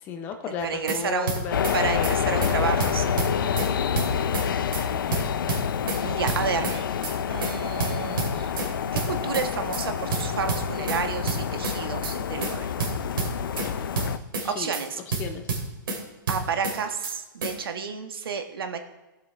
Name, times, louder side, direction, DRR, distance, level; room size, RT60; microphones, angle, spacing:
voice 1, 0.0-1.9 2.2-2.7 13.8-13.9 14.4-14.8 15.2-15.4, left 6 dB, 15° left, 6 dB, 0.6 m, -34 dB
sound 1, 0.6-1.0 1.3-1.8 2.0-2.1 2.4-2.5 2.8-3.7 3.9-4.5 4.7-4.8 5.1-6.0 6.3-6.8 7.0-7.1 7.4-7.5 7.8-8.7 9.0-9.5 9.7-9.8 10.1-11.0 11.3-11.8 12.0-12.1 12.4-12.5 12.8-13.7 14.0-14.5 14.7-14.8 15.1-16.0 16.3-16.8 17.0-17.1 17.4-17.5, right 4 dB, 70° right, 3.4 m, -29 dB
voice 2, 0.6-1.3 1.7-3.1 3.4-3.6 6.0-6.9 7.3-8.5 8.9-12.7 14.4-15.0 16.3-18.8, right 6 dB, 85° right, 6 dB, 1.5 m, -30 dB
sound 2, 1.5-14.2, left 8 dB, 70° left, 0.6 m, -28 dB
17.0 x 7.6 x 3.4 m, 1.1 s
hypercardioid pair, 175°, 12 cm